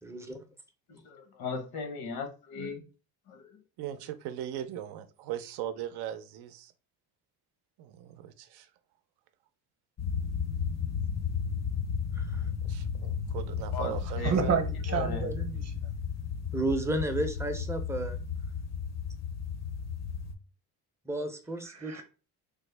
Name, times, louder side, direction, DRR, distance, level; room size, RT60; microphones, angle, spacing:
voice 1, 0.0-0.4 12.2-12.4 16.5-18.2 21.1-22.0, right 1 dB, 5° right, 0.4 m, -32 dB
voice 2, 0.9-2.8 3.3-3.6 13.7-14.6 14.9-15.3, left 4 dB, 70° left, 0.9 m, -37 dB
voice 3, 3.8-6.7 7.8-8.7 12.6-14.6, right 11 dB, 90° right, 0.5 m, -39 dB
sound 1, 10.0-20.3, left 6 dB, 45° left, 0.5 m, -33 dB
voice 4, 14.2-15.7 21.7-22.0, right 7 dB, 40° right, 0.7 m, -30 dB
3.4 x 2.1 x 3.2 m
cardioid pair, 130°, 38 cm